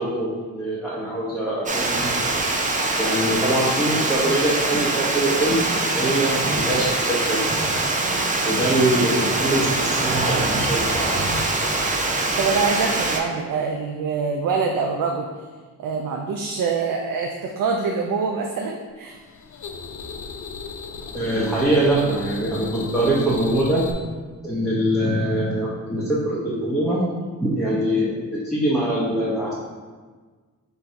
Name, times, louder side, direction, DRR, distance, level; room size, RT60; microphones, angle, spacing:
voice 1, 0.0-2.1 3.0-7.5 8.4-11.3 21.1-23.9 24.4-27.0 27.4-29.5, right 1 dB, ahead, -9 dB, 0.8 m, -23 dB
Water, 1.7-13.2, right 2 dB, 25° right, 0.5 m, -23 dB
voice 2, 8.0-8.3 12.4-15.3 15.8-19.2, right 5 dB, 75° right, 2 dB, 0.5 m, -25 dB
sound 1, 19.1-23.9, left 5 dB, 55° left, 0.5 m, -36 dB
3.8 x 2.7 x 4.4 m, 1.4 s
cardioid pair, 90°, 34 cm